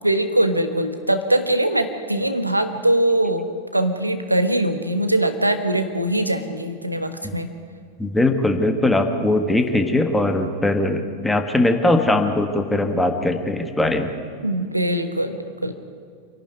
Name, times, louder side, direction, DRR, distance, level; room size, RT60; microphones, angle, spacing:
voice 1, 0.0-7.5 14.4-15.7, right 1 dB, 85° right, 9 dB, 1.4 m, -22 dB
voice 2, 8.0-14.1, left 2 dB, 5° left, 6 dB, 1.8 m, -20 dB
27.0 x 11.5 x 9.8 m, 2.3 s
figure-of-eight pair, 90°, 0 cm